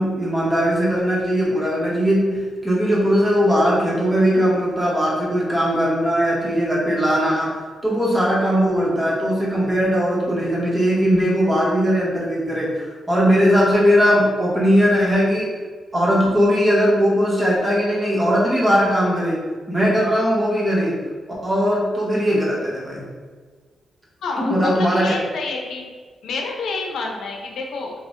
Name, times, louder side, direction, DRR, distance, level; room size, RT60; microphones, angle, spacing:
voice 1, 0.0-7.6 7.8-15.5 15.9-19.4 19.7-20.9 21.4-23.0 24.4-25.1, equal, 15° right, -6 dB, 1.1 m, -19 dB
voice 2, 24.2-25.8 26.2-27.9, left 3 dB, 80° left, 1 dB, 0.6 m, -28 dB
5.2 x 2.8 x 2.5 m, 1.5 s
wide cardioid pair, 155°, 0 cm